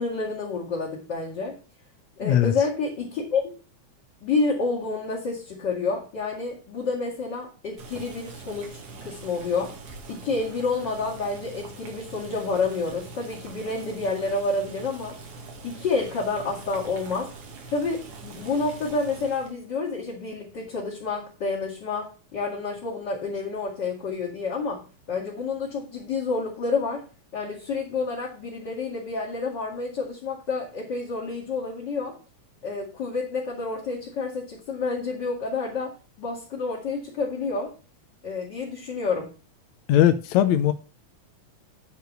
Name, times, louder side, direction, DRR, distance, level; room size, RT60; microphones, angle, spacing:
voice 1, 0.0-1.6 2.2-3.4 4.2-9.7 10.1-15.2 15.6-17.3 17.7-24.8 25.1-27.0 27.3-32.2 32.6-37.7 38.2-39.3, left 4 dB, 40° left, 2.9 m, -29 dB
voice 2, 2.2-2.5 39.9-40.7, left 11 dB, 75° left, 2.0 m, -19 dB
Boiling, 7.8-19.6, right 3 dB, 90° right, 3.4 m, -43 dB
10.0 x 4.7 x 6.7 m
omnidirectional pair, 3.3 m